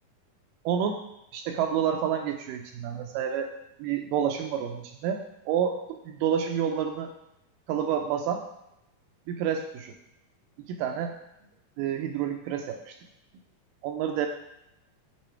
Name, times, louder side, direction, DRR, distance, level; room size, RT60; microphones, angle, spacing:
voice 1, 0.7-1.0 1.3-3.5 3.8-7.1 7.7-8.4 9.3-10.0 10.7-11.1 11.8-13.0 13.8-14.3, right 8 dB, 80° right, 4 dB, 2.0 m, -29 dB
8.9 x 4.1 x 4.4 m, 0.85 s
omnidirectional pair, 4.1 m